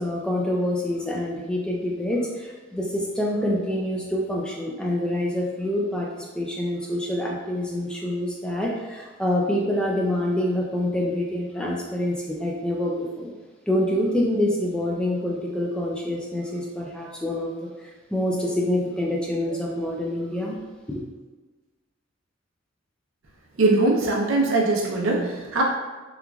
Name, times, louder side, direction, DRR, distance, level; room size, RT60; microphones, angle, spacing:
voice 1, 0.0-13.3 13.7-20.6 20.9-21.0, left 1 dB, 5° left, -2 dB, 0.3 m, -26 dB
voice 2, 23.6-25.6, right 2 dB, 90° right, -2 dB, 0.6 m, -21 dB
3.0 x 2.4 x 2.3 m, 1.3 s
head